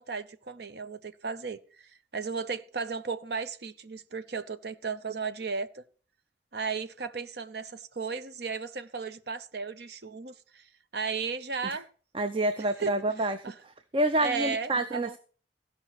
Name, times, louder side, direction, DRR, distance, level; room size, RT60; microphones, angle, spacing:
voice 1, 0.0-5.8 6.5-10.7 10.9-11.9 12.8-12.9 13.4-13.6 14.2-15.2, right 5 dB, 60° right, 0.8 m, -35 dB
voice 2, 12.1-13.5 13.9-15.2, right 1 dB, 30° right, 0.6 m, -28 dB
15.5 x 5.5 x 5.8 m
head